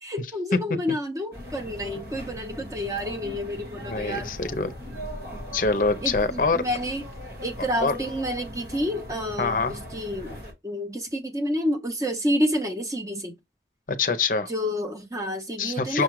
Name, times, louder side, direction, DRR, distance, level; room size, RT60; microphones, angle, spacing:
voice 1, 0.0-4.4 6.0-7.1 7.4-10.4 10.6-13.3 14.5-16.0, equal, 20° right, 0.8 m, -29 dB
sound 1, 1.3-10.5, equal, 60° right, 1.7 m, -39 dB
voice 2, 3.9-4.7 5.5-6.6 7.8-7.9 9.4-9.8 13.9-14.5 15.6-16.0, left 4 dB, 50° left, 0.6 m, -24 dB
6.3 x 2.3 x 3.1 m
head